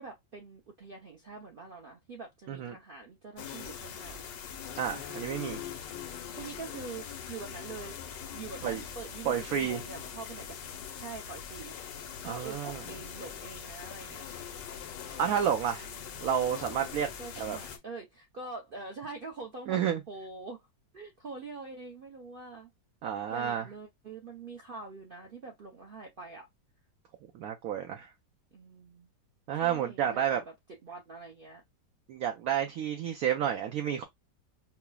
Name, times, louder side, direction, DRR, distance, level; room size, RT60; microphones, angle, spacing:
voice 1, 0.0-4.2 6.4-7.9 8.3-10.7 11.0-11.7 12.2-14.2 15.9-16.3 17.2-19.8 20.1-20.6 20.9-22.7 23.3-26.5 28.5-29.1 29.6-30.4 30.8-31.6, right 4 dB, 85° right, 0.4 m, -44 dB
sound 1, 3.4-17.8, left 8 dB, 85° left, 1.4 m, -42 dB
voice 2, 4.8-5.6 8.6-8.8 9.2-9.8 12.2-12.8 15.2-15.9 16.2-17.1 17.4-17.6 19.7-20.0 23.0-23.6 27.3-28.1 29.5-30.4 32.1-34.0, right 9 dB, 70° right, 0.9 m, -30 dB
5.7 x 2.0 x 2.2 m
omnidirectional pair, 1.9 m